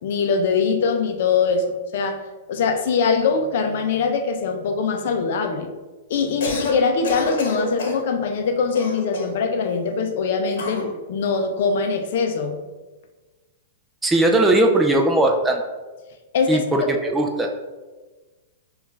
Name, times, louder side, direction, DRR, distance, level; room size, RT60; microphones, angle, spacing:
voice 1, 0.0-1.6 1.9-5.7 6.1-10.8 11.1-12.6 16.3-16.6, left 5 dB, 55° left, 6 dB, 0.5 m, -22 dB
Cough, 6.2-6.8 7.0-8.0 8.7-9.4 10.6-10.9, left 2 dB, 75° left, 0.9 m, -27 dB
voice 2, 14.0-15.6 16.5-17.5, right 1 dB, 10° right, 2 dB, 0.3 m, -18 dB
5.6 x 2.4 x 3.1 m, 1.2 s
supercardioid pair, 160°, 0 cm